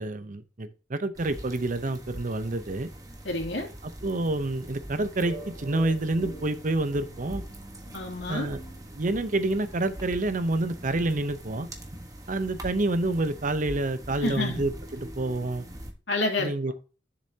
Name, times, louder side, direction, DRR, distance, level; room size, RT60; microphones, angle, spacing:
voice 1, 0.0-2.9 3.8-7.4 8.3-8.6 8.9-11.7 12.3-15.6 16.4-16.7, right 2 dB, 50° right, 0.8 m, -28 dB
sound 1, 1.1-15.9, right 1 dB, 20° right, 1.3 m, -43 dB
voice 2, 3.2-3.7 7.9-8.5 14.2-14.6 16.1-16.5, left 2 dB, 80° left, 2.7 m, -28 dB
sound 2, 5.2-9.8, right 1 dB, 45° left, 2.0 m, -45 dB
10.5 x 6.9 x 2.8 m
head